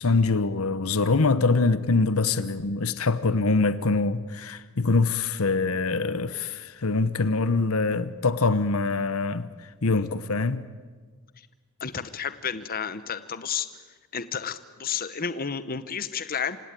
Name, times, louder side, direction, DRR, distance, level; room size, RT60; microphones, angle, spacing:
voice 1, 0.0-9.5 9.8-10.6, left 3 dB, 70° left, 1.0 m, -24 dB
voice 2, 11.8-13.7 14.1-16.6, left 7 dB, 40° left, 0.9 m, -31 dB
27.5 x 17.5 x 9.2 m
head